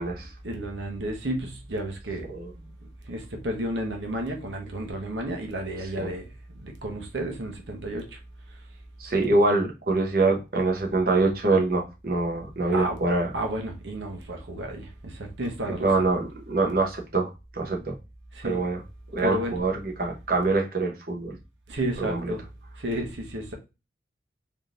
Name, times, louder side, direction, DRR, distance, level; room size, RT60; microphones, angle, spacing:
voice 1, 0.4-2.3 3.1-6.3 6.6-8.0 12.7-13.0 13.3-15.9 18.4-18.6 19.2-19.6 21.7-22.4 22.8-23.5, right 1 dB, 90° right, 0.9 m, -32 dB
voice 2, 9.0-13.3 15.8-17.3 17.6-17.9 18.4-18.8 19.1-21.4 22.0-22.3, right 3 dB, 55° right, 0.9 m, -24 dB
3.6 x 2.8 x 2.5 m
head